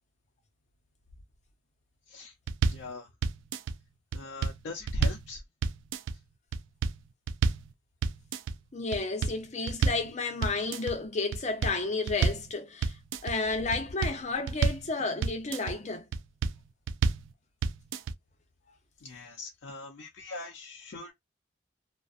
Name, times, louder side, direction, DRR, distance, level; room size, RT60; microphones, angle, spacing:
sound 1, 2.5-2.9 3.2-3.8 4.1-5.3 5.6-6.2 6.5-7.0 7.3-7.7 8.0-8.5 8.9-10.1 10.4-10.9 11.3-12.5 12.8-13.4 13.7-14.9 15.2-15.8 16.1-16.6 16.9-17.3 17.6-18.1, right 5 dB, 90° right, 0.3 m, -29 dB
voice 1, 2.7-3.1 4.1-5.4 19.0-21.1, left 2 dB, 80° left, 0.5 m, -40 dB
voice 2, 8.7-13.0 13.2-16.1 16.4-16.5, left 3 dB, 35° left, 0.6 m, -32 dB
2.5 x 2.1 x 2.3 m
head